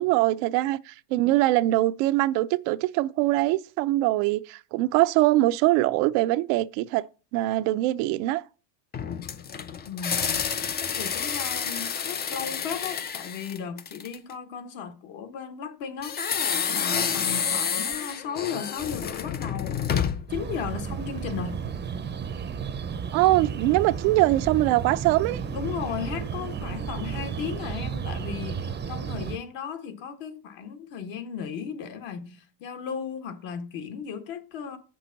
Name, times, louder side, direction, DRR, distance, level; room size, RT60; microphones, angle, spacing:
voice 1, 0.0-7.1 7.3-8.4 23.1-25.4, right 17 dB, 65° right, 0.6 m, -23 dB
sound 1, 8.9-14.3 16.0-20.4, left 7 dB, 20° left, 0.4 m, -29 dB
voice 2, 9.9-10.5 10.8-16.3 16.7-19.8 20.3-21.6 25.5-34.8, left 7 dB, 60° left, 1.6 m, -35 dB
sound 2, 20.3-29.4, right 6 dB, 20° right, 0.6 m, -33 dB
7.8 x 6.1 x 4.0 m
supercardioid pair, 105°, 49 cm